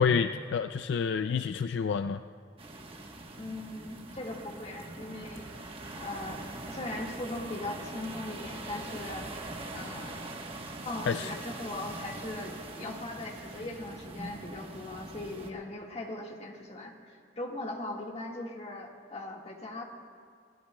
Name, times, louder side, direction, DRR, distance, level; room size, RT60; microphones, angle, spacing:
voice 1, 0.0-2.2 11.1-11.3, left 6 dB, 65° left, 10 dB, 0.3 m, -28 dB
sound 1, 2.6-15.5, right 2 dB, 30° right, 1.1 m, -42 dB
voice 2, 3.4-5.5 6.0-10.3 10.8-19.8, left 2 dB, 35° left, 0 dB, 1.7 m, -39 dB
27.5 x 16.0 x 2.2 m, 2.2 s
head